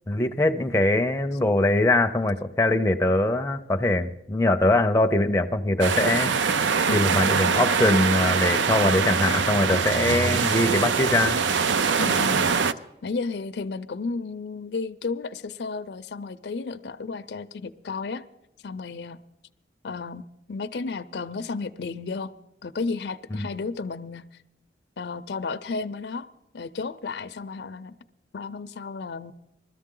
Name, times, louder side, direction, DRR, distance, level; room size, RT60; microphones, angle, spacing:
voice 1, 0.1-6.3 6.9-11.4 23.3-23.5, left 2 dB, 15° left, 6 dB, 0.5 m, -22 dB
sound 1, 5.8-12.7, right 5 dB, 90° right, 0.5 m, -23 dB
voice 2, 6.9-7.2 12.0-12.5 13.0-18.3 18.6-19.2 19.8-22.3 22.6-24.2 25.0-26.3 26.5-28.0 28.3-29.3, left 4 dB, 70° left, 13 dB, 0.5 m, -33 dB
21.0 x 13.5 x 3.8 m, 0.86 s
head